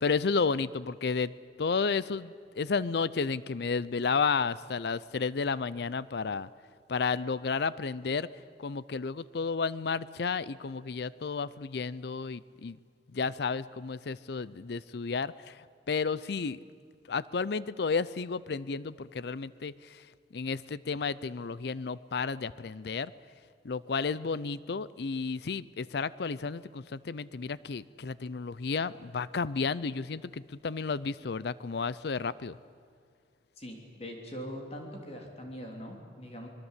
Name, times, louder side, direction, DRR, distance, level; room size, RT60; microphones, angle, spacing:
voice 1, 0.0-1.3 1.6-6.5 6.9-8.3 8.6-12.8 13.1-16.6 17.1-20.1 20.3-23.1 23.6-32.6, left 5 dB, 65° left, 18 dB, 0.5 m, -32 dB
voice 2, 33.6-36.5, equal, 35° left, 2 dB, 3.2 m, -42 dB
25.5 x 21.0 x 8.2 m, 2.2 s
head